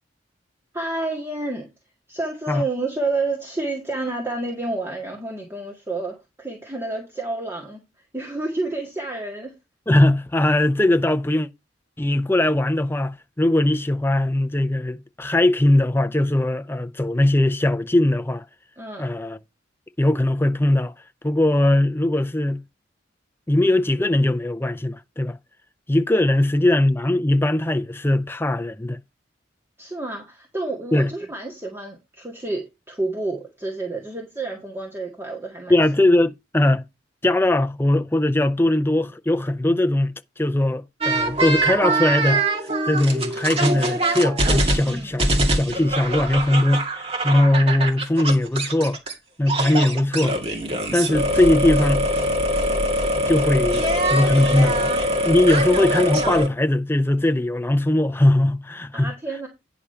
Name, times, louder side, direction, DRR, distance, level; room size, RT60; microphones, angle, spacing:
voice 1, 0.7-1.7 2.1-7.9 8.1-9.5 18.8-19.1 29.8-35.8 44.8-45.2 55.5-55.7 58.9-59.5, right 2 dB, 15° right, 1.8 m, -29 dB
voice 2, 9.9-11.5 12.0-18.4 19.0-19.4 20.0-20.9 21.2-22.6 23.5-25.4 25.9-29.0 30.9-31.1 35.7-36.8 37.2-42.4 42.9-49.0 49.4-50.4 50.9-52.1 53.3-53.8 54.1-55.0 55.2-59.1, left 1 dB, 10° left, 0.5 m, -20 dB
sound 1, 41.0-49.1 49.5-56.5, right 1 dB, 30° right, 2.1 m, -23 dB
9.9 x 5.0 x 5.7 m
head